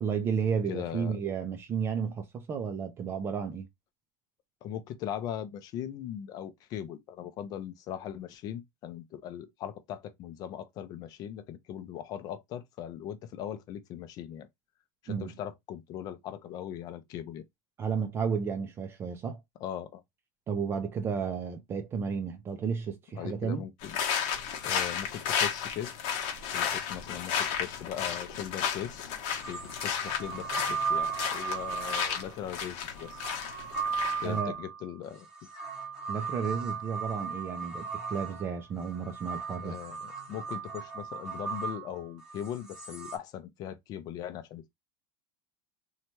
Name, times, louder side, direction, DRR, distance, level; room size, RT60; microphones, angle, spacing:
voice 1, 0.0-3.7 15.1-15.4 17.8-19.4 20.5-23.6 34.2-34.6 36.1-39.8, right 6 dB, 20° right, 0.4 m, -32 dB
voice 2, 0.7-1.1 4.6-14.5 15.0-17.4 19.6-20.0 23.1-24.0 24.6-25.9 26.5-29.1 29.5-33.2 34.2-35.3 39.6-44.7, left 10 dB, 35° left, 0.5 m, -39 dB
sound 1, 23.8-34.4, left 8 dB, 50° left, 0.9 m, -33 dB
sound 2, 28.7-28.8 29.3-43.2, right 5 dB, 5° right, 0.8 m, -36 dB
2.8 x 2.2 x 2.9 m
supercardioid pair, 155°, 11 cm